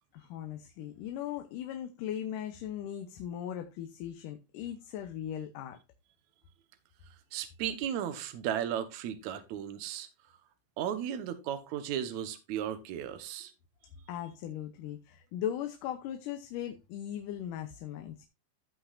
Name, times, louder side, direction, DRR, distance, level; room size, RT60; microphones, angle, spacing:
voice 1, 0.1-5.8 14.1-18.3, left 10 dB, 80° left, 2.4 m, -38 dB
voice 2, 7.3-10.1 10.8-13.5, right 10 dB, 65° right, 2.2 m, -35 dB
15.5 x 5.8 x 2.4 m
omnidirectional pair, 3.8 m